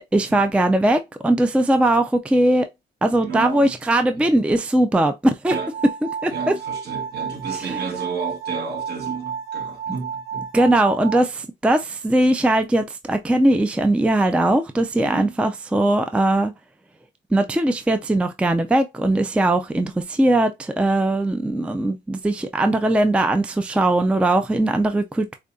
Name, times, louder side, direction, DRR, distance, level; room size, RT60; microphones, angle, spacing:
voice 1, 0.1-2.7 3.0-5.6 6.2-6.5 7.6-7.7 10.5-16.5 17.3-25.3, right 1 dB, 5° right, 0.4 m, -20 dB
voice 2, 3.2-3.8 4.1-4.3 5.5-5.7 6.3-10.5 15.0-15.4, right 5 dB, 55° right, 1.4 m, -32 dB
sound 1, 5.5-11.2, right 7 dB, 80° right, 1.0 m, -31 dB
4.9 x 2.3 x 2.6 m
cardioid pair, 90°, 20 cm